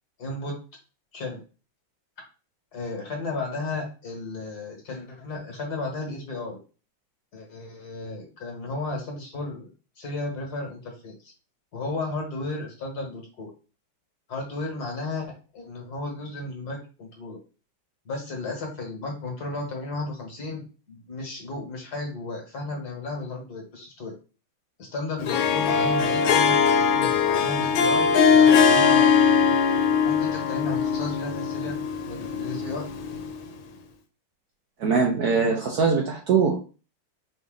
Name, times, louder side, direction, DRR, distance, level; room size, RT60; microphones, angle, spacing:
voice 1, 0.2-0.5 1.1-1.4 2.7-6.6 7.3-9.7 10.0-11.3 11.7-13.5 14.3-17.4 18.0-24.1 24.8-29.3 30.0-31.8 32.0-32.9, left 2 dB, 55° left, 1 dB, 1.7 m, -34 dB
Harp, 25.2-33.5, left 6 dB, 85° left, 1.5 m, -21 dB
voice 2, 34.8-36.5, right 5 dB, 60° right, 1 dB, 1.1 m, -22 dB
5.1 x 2.7 x 3.7 m, 0.34 s
omnidirectional pair, 2.2 m